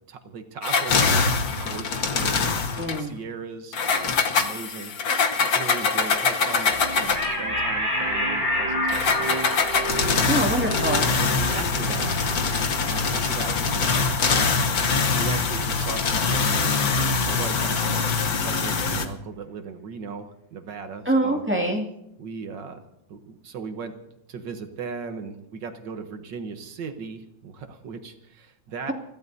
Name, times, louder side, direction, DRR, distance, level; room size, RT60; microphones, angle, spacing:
voice 1, 0.1-4.9 5.5-9.6 9.8-10.5 11.2-12.6 12.8-16.8 17.2-21.4 22.2-22.8 23.1-23.9 24.3-28.9, right 5 dB, 70° right, 7 dB, 1.7 m, -37 dB
sound 1, 0.6-3.0 3.7-7.4 8.9-19.0, left 5 dB, 55° left, 1.4 m, -23 dB
voice 2, 2.8-3.2 10.2-11.1 21.1-21.9, right 1 dB, 5° right, 0 dB, 2.1 m, -24 dB
sound 2, 6.6-16.5, right 3 dB, 30° right, 1.6 m, -36 dB
sound 3, 7.2-14.0, left 1 dB, 35° left, 5.6 m, -30 dB
30.0 x 15.5 x 2.7 m, 0.82 s
omnidirectional pair, 2.1 m